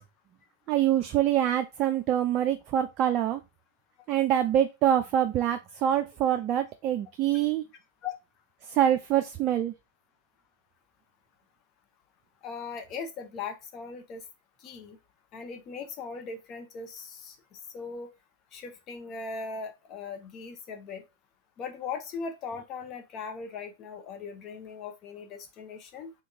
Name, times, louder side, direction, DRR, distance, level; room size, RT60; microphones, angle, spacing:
voice 1, 0.7-3.4 4.1-7.6 8.7-9.7, right 11 dB, 35° right, 7 dB, 0.4 m, -25 dB
voice 2, 12.4-14.2 14.6-15.0 15.3-17.4 17.7-18.1 18.5-21.0 21.6-26.1, left 5 dB, 35° left, 6 dB, 0.7 m, -39 dB
3.5 x 3.4 x 2.7 m, 0.24 s
hypercardioid pair, 105°, 0 cm